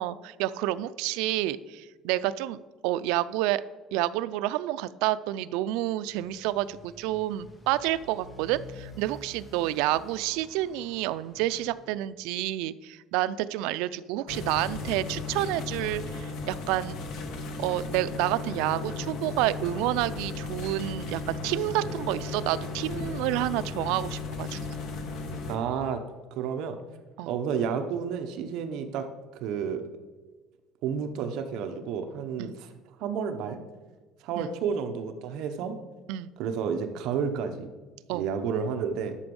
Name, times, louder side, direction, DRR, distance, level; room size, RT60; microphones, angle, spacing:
voice 1, 0.0-3.6 3.9-17.0 17.6-24.6 27.2-27.3 32.4-32.5 34.4-34.5 36.1-36.3 38.1-38.3, right 15 dB, 90° right, 16 dB, 0.4 m, -29 dB
Motorcycle, 5.9-12.0, left 1 dB, 15° left, 1.1 m, -49 dB
sound 1, 14.3-25.6, left 4 dB, 55° left, 1.5 m, -35 dB
voice 2, 25.5-26.0 26.3-26.8 27.3-29.1 29.4-29.8 30.8-32.7 33.0-33.6 34.2-35.7 36.4-37.7 38.1-39.1, right 7 dB, 60° right, 7 dB, 0.9 m, -31 dB
11.5 x 7.0 x 5.3 m, 1.3 s
cardioid pair, 170°, 0 cm